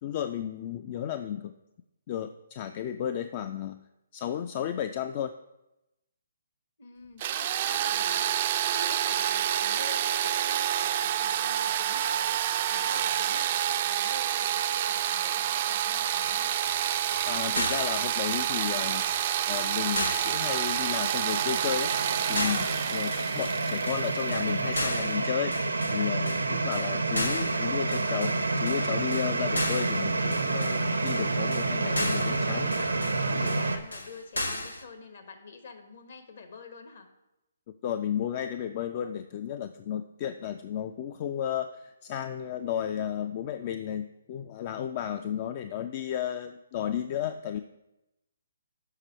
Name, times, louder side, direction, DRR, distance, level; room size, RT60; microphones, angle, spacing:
voice 1, 0.0-1.5 2.1-3.8 4.1-5.3 17.3-19.0 19.5-21.9 22.3-25.5 25.9-32.7 33.3-33.5 37.8-47.6, left 9 dB, 35° left, 9 dB, 0.3 m, -33 dB
voice 2, 6.8-16.5 31.6-37.1 45.1-45.5, left 4 dB, 60° left, 5 dB, 1.2 m, -47 dB
sound 1, 7.2-24.9, right 11 dB, 40° right, 0.3 m, -28 dB
sound 2, 16.0-34.8, left 1 dB, 85° left, 0.8 m, -36 dB
Water Boiler, 19.1-33.8, right 3 dB, 85° right, 0.7 m, -29 dB
6.5 x 5.2 x 5.3 m, 0.91 s
figure-of-eight pair, 135°, 0 cm